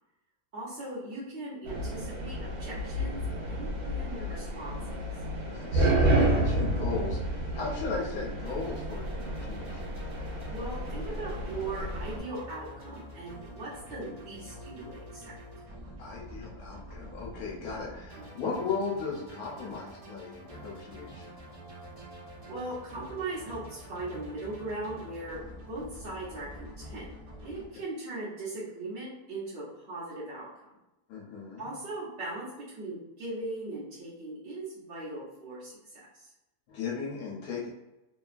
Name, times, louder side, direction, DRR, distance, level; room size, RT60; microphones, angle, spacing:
voice 1, 0.5-3.2 3.5-4.8 10.5-15.3 18.2-18.5 22.4-25.4 25.7-27.1 27.4-30.5 31.6-35.7 36.1-36.3, right 2 dB, 50° right, -11 dB, 1.0 m, -39 dB
sound 1, 1.6-12.2, right 1 dB, 85° right, 1.2 m, -30 dB
voice 2, 5.5-9.9 16.0-21.3 31.1-31.6 36.7-37.7, left 4 dB, 75° left, -3 dB, 1.0 m, -36 dB
sound 2, 8.4-27.6, equal, 70° right, 0.3 m, -46 dB
2.9 x 2.2 x 2.4 m, 0.97 s
omnidirectional pair, 1.6 m